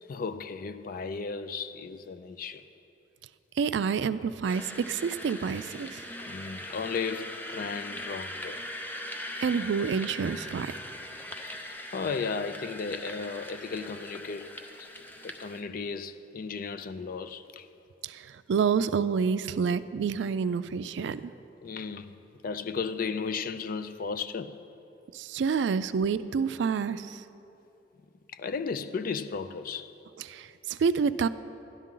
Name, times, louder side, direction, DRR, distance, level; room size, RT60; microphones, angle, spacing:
voice 1, 0.0-2.6 6.2-8.6 11.5-14.5 14.8-14.9 15.2-17.7 21.6-24.6 28.3-29.9, left 5 dB, 55° left, 0.4 m, -35 dB
voice 2, 3.6-6.0 9.4-10.8 18.0-21.3 25.1-27.2 30.3-31.3, right 6 dB, 85° right, 0.3 m, -28 dB
sound 1, 4.5-15.6, left 1 dB, 10° left, 0.6 m, -41 dB
11.5 x 11.5 x 3.8 m
head